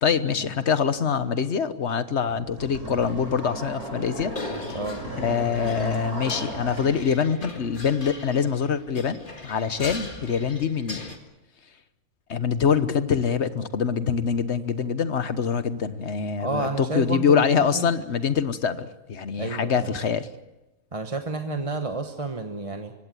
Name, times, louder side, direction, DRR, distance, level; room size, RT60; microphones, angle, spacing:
voice 1, 0.0-4.3 5.2-11.0 12.3-20.3, left 6 dB, 50° left, 12 dB, 1.3 m, -24 dB
sound 1, 2.3-7.0, right 1 dB, 45° right, 7.6 m, -35 dB
sound 2, 4.3-11.2, left 3 dB, 35° left, 2.1 m, -39 dB
voice 2, 16.4-17.9 19.4-19.9 20.9-22.9, right 3 dB, 25° right, 6 dB, 1.1 m, -30 dB
24.5 x 16.5 x 9.2 m, 1.0 s
omnidirectional pair, 1.5 m